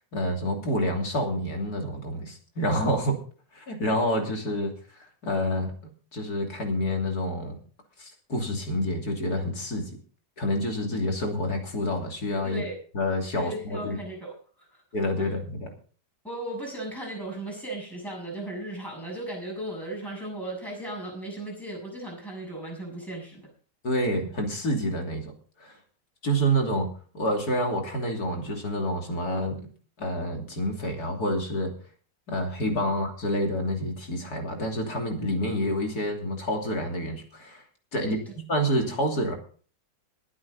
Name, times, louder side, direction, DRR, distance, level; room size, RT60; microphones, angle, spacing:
voice 1, 0.0-3.2 3.5-5.7 6.1-7.6 8.0-9.9 10.4-12.6 12.9-14.0 14.9-15.7 23.8-25.2 25.6-25.7 26.2-26.9 27.1-29.6 30.0-31.7 32.3-37.6 37.9-38.2 38.5-39.3, equal, 60° left, 2 dB, 3.4 m, -28 dB
voice 2, 12.4-12.7 13.4-14.7 15.2-15.3 16.2-23.5 32.9-33.0 38.0-38.2, right 1 dB, ahead, -3 dB, 7.1 m, -36 dB
21.0 x 8.7 x 4.1 m, 0.42 s
omnidirectional pair, 1.9 m